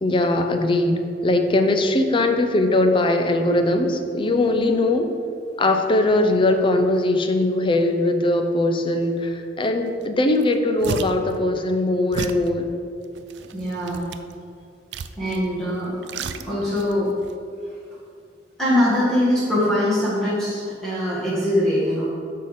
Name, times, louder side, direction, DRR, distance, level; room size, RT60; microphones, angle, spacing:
voice 1, 0.0-5.1 5.6-12.7, left 2 dB, 30° left, 6 dB, 0.5 m, -20 dB
sound 1, 10.0-10.1 10.4-11.3 12.1-12.5 13.2-14.3 14.9-15.5 15.8-16.9 17.2-17.3, right 6 dB, 70° right, 0.4 m, -32 dB
voice 2, 13.5-14.0 15.2-17.1 18.6-22.1, left 1 dB, 5° left, -10 dB, 1.6 m, -22 dB
8.1 x 3.7 x 6.6 m, 2.4 s
head